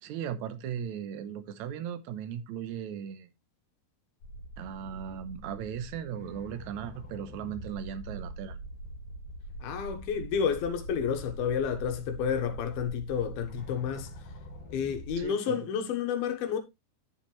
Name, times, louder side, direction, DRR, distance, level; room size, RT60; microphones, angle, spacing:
voice 1, 0.0-3.3 4.6-8.6 15.2-15.6, right 9 dB, 70° right, 1.8 m, -37 dB
sound 1, 4.2-15.2, right 1 dB, 50° left, 3.9 m, -43 dB
voice 2, 9.6-14.1 14.7-16.6, left 7 dB, 75° left, 3.1 m, -30 dB
11.0 x 7.2 x 3.1 m
omnidirectional pair, 4.4 m